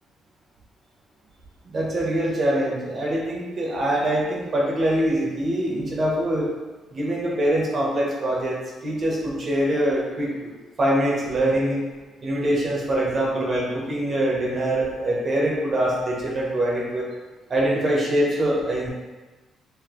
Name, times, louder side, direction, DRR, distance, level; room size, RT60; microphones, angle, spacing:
voice 1, 1.7-6.5 6.9-10.5 10.8-11.8 12.2-17.1 17.5-18.9, right 1 dB, 45° right, -4 dB, 1.0 m, -24 dB
4.0 x 2.8 x 3.0 m, 1.2 s
cardioid pair, 90°, 0 cm